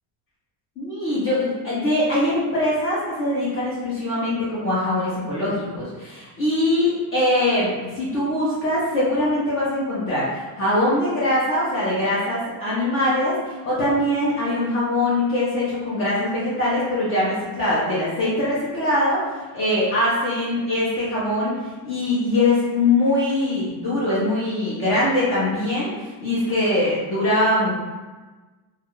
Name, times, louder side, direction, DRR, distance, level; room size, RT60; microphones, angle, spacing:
voice 1, 0.8-21.6 21.8-27.7, left 1 dB, 25° left, -9 dB, 0.5 m, -22 dB
2.3 x 2.3 x 2.9 m, 1.2 s
cardioid pair, 160°, 50 cm